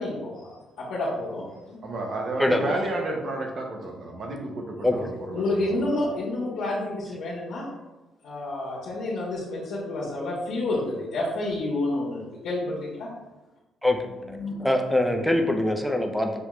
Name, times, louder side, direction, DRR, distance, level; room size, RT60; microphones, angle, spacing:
voice 1, 0.0-1.8 5.3-7.7 8.2-13.1 14.3-14.7, left 2 dB, 85° left, -9 dB, 1.2 m, -29 dB
voice 2, 1.8-5.7, right 2 dB, 55° right, 1 dB, 1.0 m, -31 dB
voice 3, 2.4-2.8 4.8-5.1 13.8-14.0 14.3-16.4, left 1 dB, ahead, 3 dB, 0.6 m, -24 dB
6.4 x 2.3 x 3.1 m, 1.1 s
cardioid pair, 90°, 0 cm